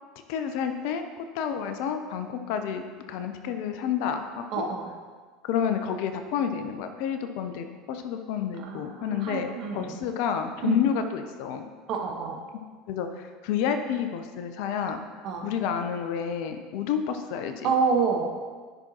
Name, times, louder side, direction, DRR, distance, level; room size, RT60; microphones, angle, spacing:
voice 1, 0.3-1.0 1.3-2.8 3.1-4.7 5.4-11.6 12.9-15.0 15.4-17.7, left 8 dB, 60° left, 7 dB, 0.5 m, -29 dB
voice 2, 4.5-4.9 8.6-9.9 10.6-10.8 11.9-12.4 15.2-15.5 17.6-18.3, right 5 dB, 50° right, 2 dB, 1.1 m, -28 dB
9.8 x 5.8 x 2.9 m, 1.5 s
hypercardioid pair, 75°, 0 cm